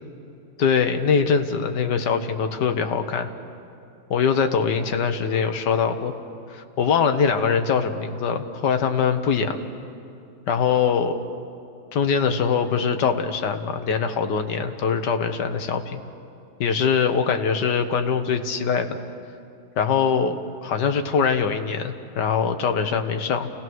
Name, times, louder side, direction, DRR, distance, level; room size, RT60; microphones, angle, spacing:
voice 1, 0.6-3.3 4.1-6.1 6.5-9.6 10.5-11.2 11.9-16.0 16.6-19.0 19.8-23.6, left 6 dB, 60° left, 6 dB, 1.6 m, -23 dB
28.5 x 18.0 x 6.3 m, 2.6 s
omnidirectional pair, 2.2 m